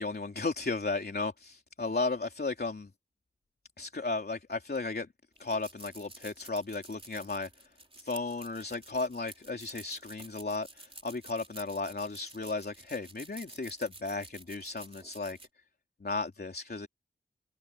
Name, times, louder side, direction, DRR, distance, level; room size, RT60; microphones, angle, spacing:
voice 1, 0.0-2.9 3.8-5.1 5.4-7.5 8.0-15.4 16.0-16.9, left 3 dB, 50° left, 3.3 m, -34 dB
sound 1, 5.3-15.5, right 2 dB, 25° right, 3.2 m, -51 dB
cardioid pair, 45°, 20 cm